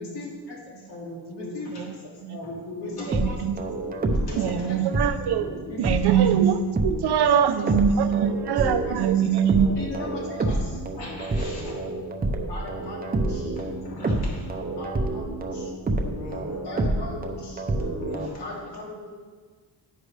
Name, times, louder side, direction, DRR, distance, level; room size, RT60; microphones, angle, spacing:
voice 1, 0.0-0.9 1.3-1.7 2.0-2.1 2.8-3.5 4.2-4.8 5.7-6.4 7.2-7.7 8.5-8.9 9.8-10.8 12.5-13.5 14.7-15.7 16.6-17.6 18.4-19.1, left 2 dB, 85° left, -3 dB, 2.4 m, -38 dB
voice 2, 0.9-1.8 2.3-3.2 3.8-5.9 6.9-7.4 8.3-8.9 9.5-10.2 10.9-11.9 13.8-14.8 15.9-16.6 17.8-18.4, left 2 dB, 65° left, -5 dB, 3.0 m, -40 dB
sound 1, 2.9-6.3 6.8-7.0 7.7-18.3, right 2 dB, 20° right, 0.7 m, -28 dB
voice 3, 3.1-3.6 4.4-6.6 6.8-9.7, right 8 dB, 70° right, 9 dB, 0.7 m, -23 dB
10.0 x 9.8 x 3.3 m, 1.5 s
wide cardioid pair, 180°, 40 cm